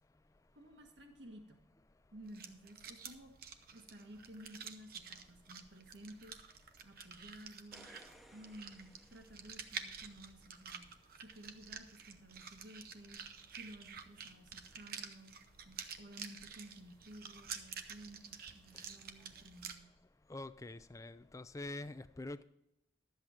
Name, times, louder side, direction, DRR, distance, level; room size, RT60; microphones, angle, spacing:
voice 1, 0.5-1.6 2.1-3.3 3.7-6.4 6.8-7.9 8.3-10.9 11.2-13.2 13.5-15.3 15.6-19.9, right 1 dB, 75° right, 4 dB, 1.5 m, -54 dB
sound 1, 2.2-19.7, right 7 dB, 55° right, 0.8 m, -50 dB
sound 2, 7.5-10.1 13.2-13.3, equal, ahead, 0.8 m, -61 dB
voice 2, 20.3-22.4, left 2 dB, 15° left, 13 dB, 0.4 m, -45 dB
12.0 x 8.0 x 4.3 m, 0.83 s
head